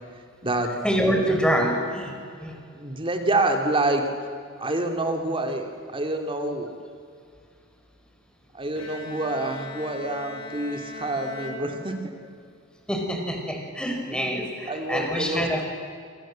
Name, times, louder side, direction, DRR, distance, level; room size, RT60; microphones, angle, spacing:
voice 1, 0.8-2.1 2.4-2.6 12.9-15.6, equal, 5° left, 2 dB, 5.3 m, -25 dB
voice 2, 2.7-4.1 4.6-6.7 8.5-12.0 14.1-14.4 14.7-15.6, right 2 dB, 25° right, 4 dB, 3.0 m, -27 dB
Bowed string instrument, 8.8-12.5, left 1 dB, 80° left, 4.7 m, -40 dB
27.0 x 27.0 x 7.8 m, 2.3 s
head